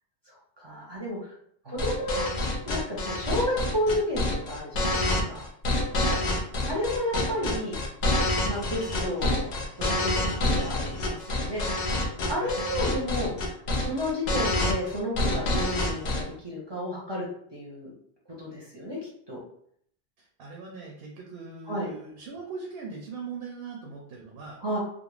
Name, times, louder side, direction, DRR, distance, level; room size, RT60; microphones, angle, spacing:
voice 1, 0.3-1.3 1.6-2.3 2.7-5.0 5.2-5.4 6.6-7.8 8.4-9.5 9.8-11.9 12.2-13.3 13.8-17.3 17.5-17.9 18.4-19.0 19.3-19.4 21.7-21.9 24.6-24.8, left 1 dB, 30° right, -5 dB, 0.6 m, -31 dB
sound 1, 1.8-16.2, left 1 dB, 55° left, 0.5 m, -27 dB
voice 2, 5.9-6.3 10.2-10.7 12.3-12.6 15.8-16.0 20.2-24.6, right 4 dB, 70° right, 0 dB, 0.8 m, -41 dB
2.4 x 2.1 x 3.1 m, 0.66 s
omnidirectional pair, 1.1 m